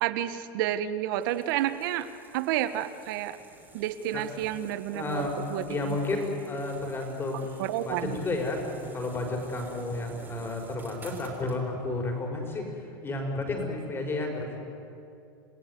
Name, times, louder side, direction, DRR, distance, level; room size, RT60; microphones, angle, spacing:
voice 1, 0.0-2.1 2.3-3.4 3.7-5.2 5.5-6.0 7.6-8.2, right 12 dB, 70° right, 12 dB, 1.5 m, -30 dB
sound 1, 1.2-11.6, right 3 dB, 15° right, 4.0 m, -51 dB
voice 2, 4.1-4.5 4.9-5.4 5.7-14.6, left 2 dB, 20° left, 2 dB, 5.2 m, -32 dB
29.0 x 16.5 x 9.5 m, 2.6 s
supercardioid pair, 140°, 11 cm